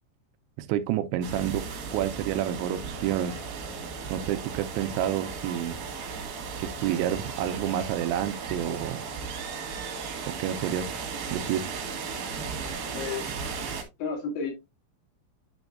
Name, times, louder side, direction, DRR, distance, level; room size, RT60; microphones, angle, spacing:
voice 1, 0.6-1.6 1.9-3.4 4.1-5.8 6.6-9.0 10.3-11.0 11.3-11.7, right 11 dB, 85° right, 2.9 m, -29 dB
sound 1, 1.2-13.8, right 5 dB, 60° right, 3.0 m, -36 dB
voice 2, 12.9-13.3 14.0-14.5, left 5 dB, 85° left, 4.8 m, -32 dB
9.8 x 5.2 x 2.4 m
omnidirectional pair, 5.4 m